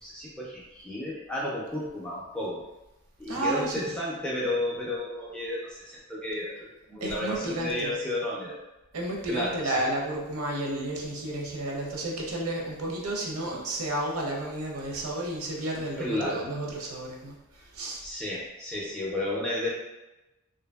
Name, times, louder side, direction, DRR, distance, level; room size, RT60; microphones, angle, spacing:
voice 1, 0.0-2.6 3.2-8.6 9.3-9.7 16.0-16.4 18.0-19.7, left 1 dB, 5° left, -5 dB, 0.4 m, -32 dB
voice 2, 3.3-3.9 7.0-8.0 8.9-18.0, right 1 dB, 80° right, -1 dB, 0.6 m, -32 dB
2.7 x 2.5 x 2.3 m, 1.0 s
head